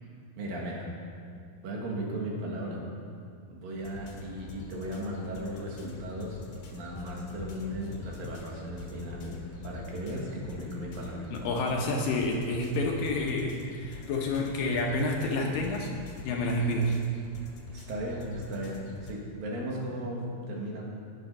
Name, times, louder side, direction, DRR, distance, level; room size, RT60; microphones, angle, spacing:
voice 1, 0.4-0.9 1.6-2.8 3.5-6.4 6.7-11.3 17.7-20.8, right 1 dB, 65° right, -2 dB, 3.2 m, -36 dB
sound 1, 3.8-19.1, left 4 dB, 55° left, 2.4 m, -45 dB
voice 2, 11.3-15.9 16.2-17.0, left 2 dB, 70° left, 0 dB, 2.5 m, -29 dB
18.0 x 6.9 x 5.5 m, 2.3 s
omnidirectional pair, 4.6 m